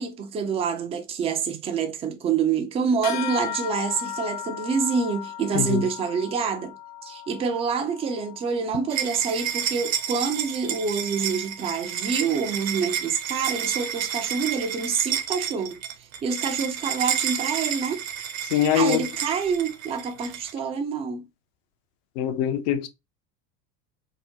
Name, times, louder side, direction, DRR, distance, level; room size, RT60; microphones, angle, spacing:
voice 1, 0.0-6.7 7.0-15.8 16.2-18.0 18.7-21.2, right 6 dB, 15° right, 0.3 m, -27 dB
sound 1, 3.0-12.8, left 10 dB, 90° left, 1.1 m, -38 dB
voice 2, 5.5-5.8 18.5-19.1 22.2-22.9, left 9 dB, 50° left, 0.6 m, -23 dB
sound 2, 8.9-20.5, right 9 dB, 55° right, 0.7 m, -30 dB
3.6 x 2.0 x 2.7 m
hypercardioid pair, 80°, 47 cm